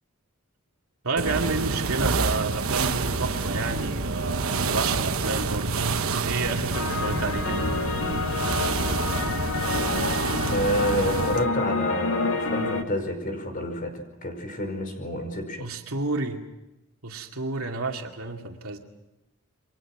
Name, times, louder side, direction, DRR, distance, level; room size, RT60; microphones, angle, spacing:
voice 1, 1.0-7.6 15.6-16.4 17.0-18.8, right 3 dB, 90° right, 2 dB, 2.4 m, -30 dB
sound 1, 1.2-11.5, right 4 dB, 75° right, 1.2 m, -27 dB
sound 2, 6.7-12.8, left 3 dB, 70° left, 2.2 m, -28 dB
voice 2, 10.5-15.6, equal, 40° left, 6 dB, 5.3 m, -29 dB
29.0 x 23.5 x 6.1 m, 0.97 s
head